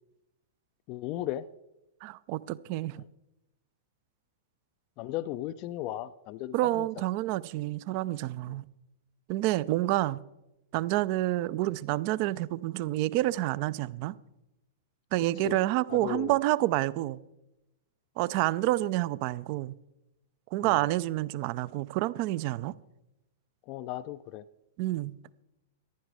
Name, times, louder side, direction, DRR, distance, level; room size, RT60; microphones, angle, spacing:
voice 1, 0.9-1.5 3.0-3.1 5.0-6.9 8.5-8.6 15.4-15.6 15.9-16.4 20.6-20.9 23.7-24.4, left 14 dB, 40° left, 0.4 m, -36 dB
voice 2, 2.0-3.0 6.5-8.7 9.3-10.2 10.7-14.2 15.1-17.2 18.2-19.8 20.5-22.7 24.8-25.2, right 16 dB, 45° right, 0.5 m, -28 dB
15.0 x 11.0 x 4.8 m
figure-of-eight pair, 100°, 0 cm